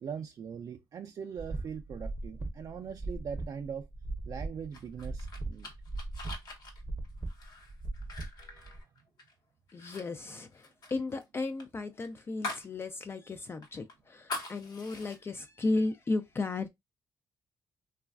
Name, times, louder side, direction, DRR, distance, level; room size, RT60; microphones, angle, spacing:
voice 1, 0.0-3.9 4.3-5.7 8.4-8.9, right 7 dB, 55° right, 0.4 m, -41 dB
sound 1, 1.4-8.8, right 2 dB, 10° right, 0.6 m, -39 dB
sound 2, 4.7-9.3 9.7-10.0 10.3-12.7 13.1-13.2 13.6-15.2, left 2 dB, 65° left, 1.0 m, -43 dB
voice 2, 9.7-16.7, left 3 dB, 30° left, 0.3 m, -34 dB
3.1 x 2.3 x 2.3 m
cardioid pair, 90°, 8 cm